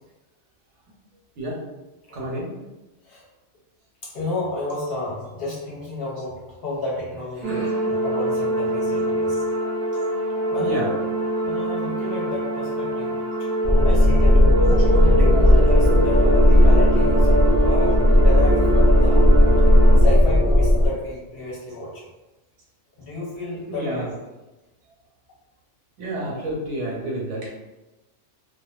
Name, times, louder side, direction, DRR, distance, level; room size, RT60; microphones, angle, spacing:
voice 1, 2.1-2.5 7.4-7.8 10.6-10.9 13.9-14.0 23.7-24.1 26.0-27.5, right 1 dB, 75° right, -3 dB, 1.0 m, -29 dB
voice 2, 4.0-9.4 10.5-10.9 11.4-13.5 13.8-17.4 17.6-19.3 20.0-22.0 23.0-24.1, left 2 dB, 60° left, -5 dB, 0.8 m, -32 dB
sound 1, 7.4-20.0, right 2 dB, 55° right, 0.5 m, -25 dB
sound 2, 13.6-20.9, left 1 dB, 5° right, 0.5 m, -15 dB
2.4 x 2.2 x 2.3 m, 1.1 s
omnidirectional pair, 1.2 m